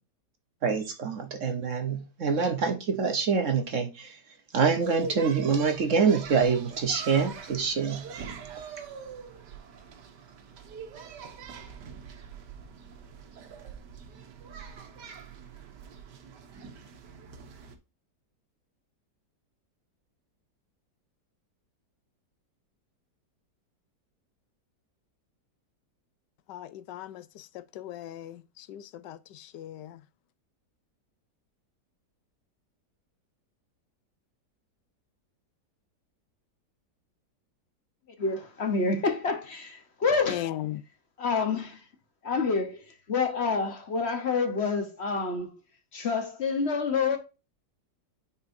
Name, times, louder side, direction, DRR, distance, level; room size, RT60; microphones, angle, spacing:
voice 1, 0.6-4.2 4.5-8.1, right 5 dB, 55° right, 1.1 m, -26 dB
sound 1, 4.7-17.8, right 6 dB, 75° right, 1.6 m, -43 dB
voice 2, 26.5-30.0 40.3-40.8, left 13 dB, 85° left, 1.2 m, -38 dB
voice 3, 38.2-40.5 41.2-41.8 42.2-45.6 45.9-47.2, left 4 dB, 45° left, 1.0 m, -28 dB
9.7 x 4.4 x 2.6 m
omnidirectional pair, 1.9 m